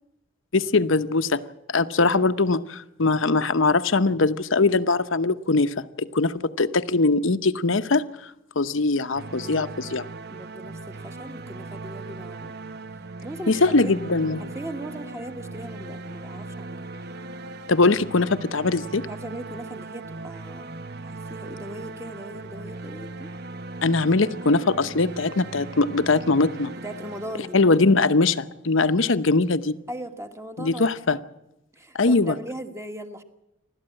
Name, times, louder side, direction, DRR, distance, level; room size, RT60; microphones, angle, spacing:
voice 1, 0.5-1.4 1.7-8.0 8.6-10.1 13.5-14.4 17.7-19.1 23.8-26.7 27.5-29.7 30.6-31.2 31.9-32.4, left 3 dB, 65° left, 12 dB, 0.9 m, -21 dB
sound 1, 9.1-28.1, right 3 dB, 50° right, 0.8 m, -38 dB
voice 2, 10.3-12.7 13.2-13.9 14.4-16.8 19.1-20.7 21.0-23.3 26.8-27.6 29.9-30.9 31.7-33.2, right 1 dB, 15° right, 7 dB, 1.4 m, -38 dB
27.5 x 13.0 x 8.9 m, 0.90 s
head